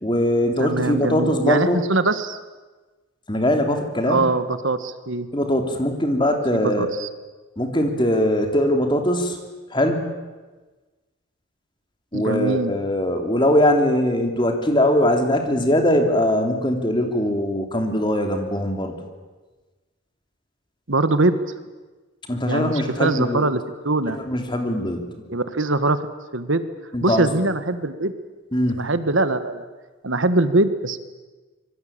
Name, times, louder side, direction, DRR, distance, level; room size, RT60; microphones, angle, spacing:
voice 1, 0.0-1.8 3.3-4.2 5.3-6.9 7.6-9.4 9.7-10.0 12.1-18.9 22.3-23.5 24.1-25.1 26.9-27.3 28.5-28.9, left 1 dB, 25° left, 4 dB, 3.3 m, -21 dB
voice 2, 0.6-2.4 4.0-5.3 6.5-7.1 12.1-12.7 20.9-21.4 22.5-23.6 23.8-24.2 25.3-26.0 26.3-26.6 27.0-28.1 28.8-29.6 30.0-31.0, right 2 dB, 70° right, 11 dB, 1.6 m, -22 dB
26.0 x 23.0 x 8.9 m, 1.2 s
head